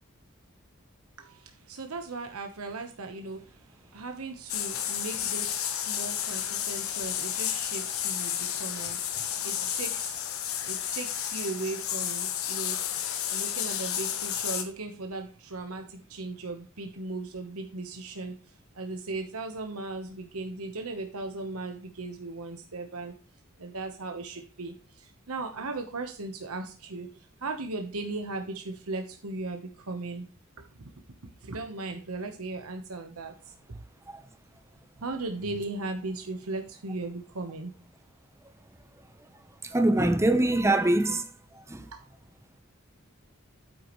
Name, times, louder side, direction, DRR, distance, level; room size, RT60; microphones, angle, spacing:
voice 1, 1.2-18.4 18.7-23.1 23.6-30.3 30.6-30.9 31.2-33.8 35.0-37.7 41.8-42.0, right 3 dB, 90° right, 1.1 m, -37 dB
sound 1, 4.5-14.6, left 10 dB, 75° left, 1.3 m, -31 dB
voice 2, 39.7-41.2 41.7-41.8, right 1 dB, 15° right, 0.9 m, -23 dB
9.3 x 8.5 x 3.1 m
head